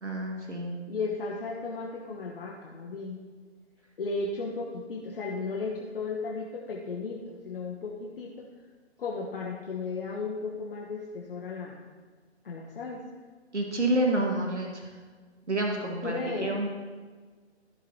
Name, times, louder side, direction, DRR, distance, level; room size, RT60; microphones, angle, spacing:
voice 1, 0.0-0.7 13.5-14.9 15.5-16.7, right 1 dB, 90° right, 0 dB, 1.8 m, -29 dB
voice 2, 0.9-3.2 4.0-8.5 9.0-11.8 12.4-13.0 16.0-16.6, left 4 dB, 55° left, -2 dB, 1.3 m, -35 dB
15.5 x 7.8 x 2.9 m, 1.5 s
figure-of-eight pair, 140°, 34 cm